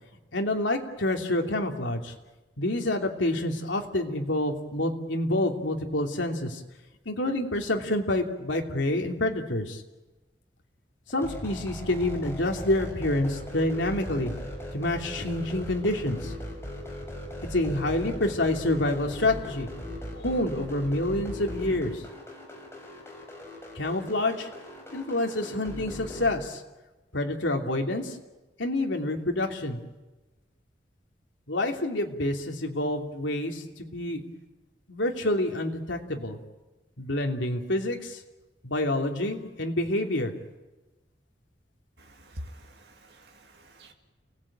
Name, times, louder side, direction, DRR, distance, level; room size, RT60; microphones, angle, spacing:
voice 1, 0.3-2.1 2.6-6.6 7.0-9.8 11.1-14.3 14.7-16.3 17.5-19.7 20.1-22.0 23.7-24.5 24.9-26.6 27.1-28.2 28.6-29.8 31.5-34.2 34.9-36.4 37.0-38.2 38.6-40.3, left 1 dB, 85° left, 3 dB, 3.0 m, -28 dB
sound 1, 11.1-26.3, equal, 15° left, 5.6 m, -39 dB
voice 2, 42.0-43.9, equal, 60° right, 2 dB, 2.3 m, -46 dB
29.5 x 18.5 x 8.8 m, 1.1 s
head